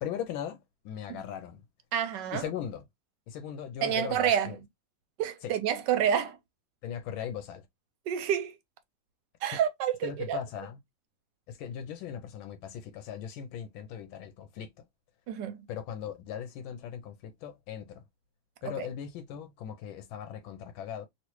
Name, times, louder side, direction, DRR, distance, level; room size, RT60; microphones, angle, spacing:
voice 1, 0.0-1.6 2.3-2.9 3.3-4.6 5.4-5.5 6.8-7.7 9.5-9.6 10.0-10.8 11.5-14.8 15.7-18.0 18.6-21.1, left 9 dB, 85° left, 1.4 m, -39 dB
voice 2, 1.9-2.4 3.8-4.5 5.2-6.4 8.1-8.5 9.4-10.4 15.3-15.6, right 9 dB, 75° right, 1.2 m, -28 dB
3.1 x 2.9 x 2.9 m
omnidirectional pair, 2.1 m